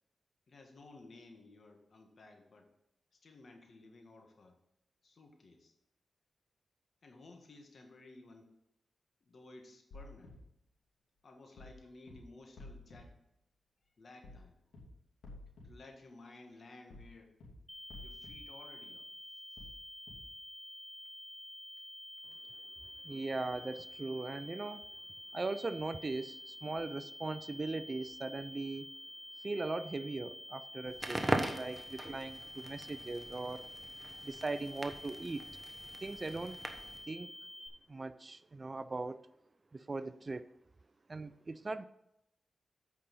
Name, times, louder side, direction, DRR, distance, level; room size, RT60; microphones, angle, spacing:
voice 1, 0.5-2.7 3.1-4.6 5.0-5.7 7.0-8.6 9.3-10.4 11.2-13.2 14.0-14.6 15.6-17.3 18.0-19.1, left 2 dB, 60° left, 3 dB, 1.6 m, -56 dB
sound 1, 9.9-10.3 11.6-11.8 12.1-12.2 12.6-13.0 14.2-14.4 14.7-14.8 15.2-15.7 16.9-17.1 17.4-17.5 17.9-18.3 19.6-19.8 20.1-20.2, left 2 dB, 85° left, 2.9 m, -50 dB
sound 2, 17.7-37.7, left 1 dB, 5° left, 1.9 m, -49 dB
voice 2, 23.0-24.9 25.3-28.9 29.4-33.7 34.2-35.5 36.0-36.6 37.1-37.3 37.9-39.2 39.7-40.5 41.1-41.9, right 3 dB, 40° right, 15 dB, 0.4 m, -39 dB
Crackle, 30.9-37.0, right 1 dB, 20° right, 1.1 m, -40 dB
8.3 x 5.6 x 5.4 m, 0.85 s
cardioid pair, 55°, 0 cm